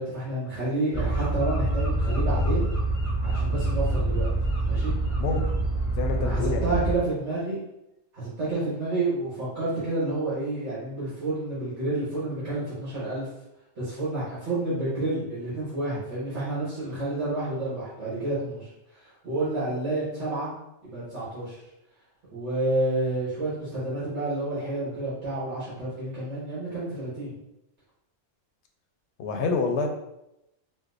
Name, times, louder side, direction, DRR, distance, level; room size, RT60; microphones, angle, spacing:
voice 1, 0.0-2.7 3.2-4.3 4.6-4.9 6.2-7.6 8.1-13.3 13.8-20.5 20.8-21.6 22.3-27.3, right 2 dB, 65° right, -10 dB, 1.6 m, -29 dB
harbour sounds, 0.9-7.0, right 1 dB, 15° left, 0.6 m, -26 dB
voice 2, 5.2-5.6 5.9-6.8 29.2-29.9, left 4 dB, 70° left, 3 dB, 0.8 m, -28 dB
4.3 x 2.1 x 2.5 m, 0.86 s
omnidirectional pair, 1.3 m